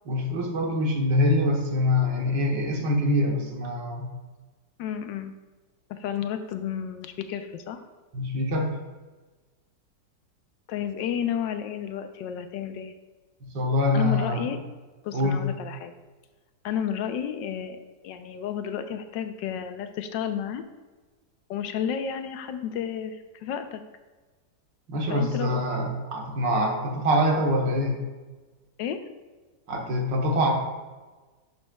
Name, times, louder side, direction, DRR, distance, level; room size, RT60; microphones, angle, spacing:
voice 1, 0.1-4.1 8.1-8.7 13.4-14.4 15.1-15.4 24.9-28.0 29.7-30.5, left 1 dB, 80° right, 1 dB, 1.9 m, -24 dB
voice 2, 4.8-5.3 5.9-7.8 10.7-12.9 13.9-14.6 15.0-15.9 16.6-17.8 18.0-20.6 21.5-23.8 25.1-25.6 28.8-29.0, left 8 dB, 80° left, 9 dB, 1.3 m, -31 dB
10.5 x 6.4 x 2.3 m, 1.3 s
omnidirectional pair, 2.0 m